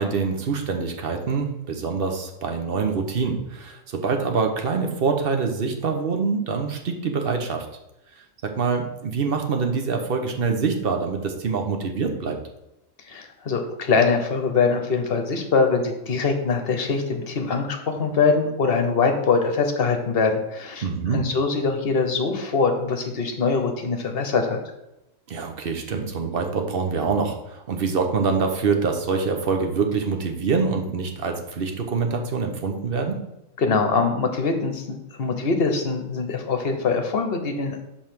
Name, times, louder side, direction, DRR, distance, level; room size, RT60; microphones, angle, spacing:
voice 1, 0.0-7.7 8.4-12.4 20.8-21.2 25.3-33.2, right 5 dB, 50° right, 4 dB, 1.0 m, -25 dB
voice 2, 13.0-20.8 21.1-24.6 33.6-37.8, left 4 dB, 50° left, 5 dB, 1.1 m, -23 dB
5.4 x 4.6 x 6.0 m, 0.89 s
omnidirectional pair, 1.4 m